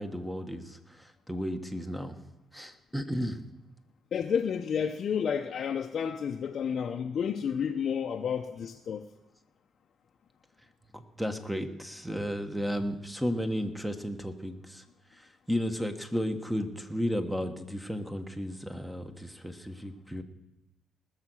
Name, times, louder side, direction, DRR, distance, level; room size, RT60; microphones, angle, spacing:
voice 1, 0.0-2.1 2.5-3.4 10.9-14.8 15.2-20.2, equal, 5° right, 1.3 m, -34 dB
voice 2, 4.1-9.1, left 7 dB, 60° left, 0.7 m, -31 dB
19.5 x 6.7 x 6.3 m
cardioid pair, 90°, 0 cm